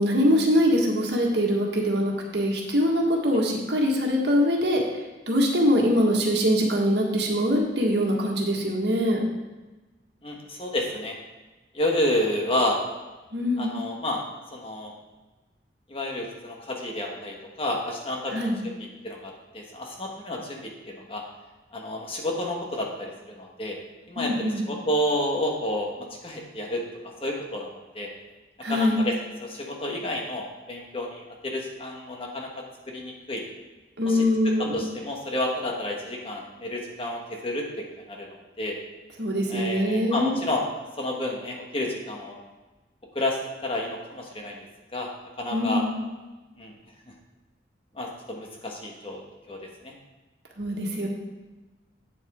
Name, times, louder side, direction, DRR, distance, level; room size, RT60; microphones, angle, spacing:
voice 1, 0.0-4.8 5.3-9.2 13.3-13.7 18.3-18.6 24.2-24.6 28.6-29.0 34.0-34.8 39.2-40.3 45.5-45.9 50.6-51.1, equal, 70° right, 0 dB, 1.6 m, -23 dB
voice 2, 10.2-11.1 11.7-12.8 13.6-14.2 14.5-14.9 15.9-18.8 19.0-21.2 21.7-23.8 24.1-25.9 26.2-26.8 27.2-27.7 27.9-28.1 28.7-29.1 29.4-33.4 34.0-38.3 38.6-38.8 39.5-40.6 41.0-42.4 43.1-44.6 44.9-45.1 45.4-45.8 46.6-46.7 47.9-49.2 49.5-49.9, left 1 dB, 30° left, 0 dB, 1.3 m, -30 dB
8.5 x 7.9 x 3.6 m, 1.2 s
head